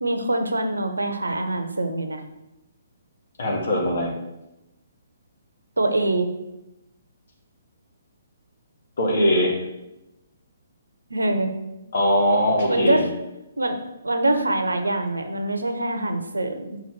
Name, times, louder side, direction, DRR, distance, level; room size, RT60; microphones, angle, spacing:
voice 1, 0.0-2.2 5.8-6.3 11.1-11.5 12.7-13.0 13.6-13.8 14.0-16.8, right 2 dB, 85° right, 7 dB, 0.9 m, -24 dB
voice 2, 3.4-4.1 9.0-9.6 11.9-13.0, equal, 60° left, 0 dB, 1.9 m, -21 dB
5.6 x 4.3 x 6.0 m, 0.93 s
figure-of-eight pair, 130°, 0 cm